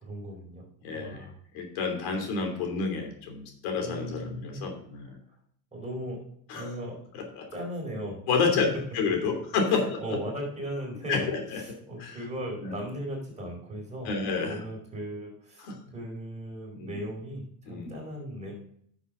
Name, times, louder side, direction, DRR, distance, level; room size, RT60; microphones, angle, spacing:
voice 1, 0.0-0.7 0.9-1.4 3.8-4.7 5.7-6.2 6.5-6.9 7.5-8.2 9.7-15.7 15.9-18.5, equal, 15° right, -1 dB, 4.5 m, -37 dB
voice 2, 0.8-1.2 1.5-5.2 6.5-6.7 7.4-7.5 8.3-8.6 8.9-10.2 11.1-11.6 12.0-12.1 12.6-12.7 14.0-14.6 15.7-15.8 16.7-17.0 17.7-18.0, left 5 dB, 70° left, 4 dB, 3.2 m, -29 dB
9.7 x 7.4 x 3.8 m, 0.64 s
cardioid pair, 140°, 49 cm